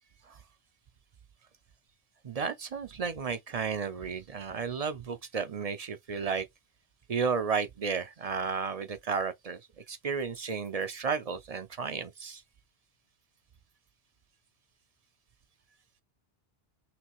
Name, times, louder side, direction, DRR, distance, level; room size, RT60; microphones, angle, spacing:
voice 1, 2.2-6.5 7.1-9.6 9.9-12.4, right 5 dB, 45° right, 0.5 m, -33 dB
5.9 x 2.3 x 3.0 m
omnidirectional pair, 1.0 m